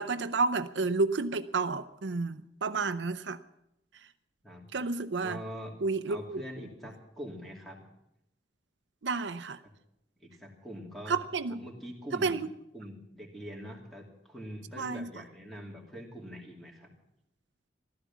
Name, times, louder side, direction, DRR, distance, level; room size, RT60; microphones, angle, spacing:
voice 1, 0.0-3.4 4.7-5.4 5.8-6.4 9.0-9.6 11.1-11.6 12.2-12.5 14.8-15.1, right 4 dB, 85° right, 12 dB, 0.6 m, -30 dB
voice 2, 5.2-5.8 6.1-7.8 10.2-11.2 11.5-12.4 12.7-16.9, equal, ahead, -1 dB, 2.7 m, -44 dB
15.0 x 12.5 x 7.3 m, 0.82 s
head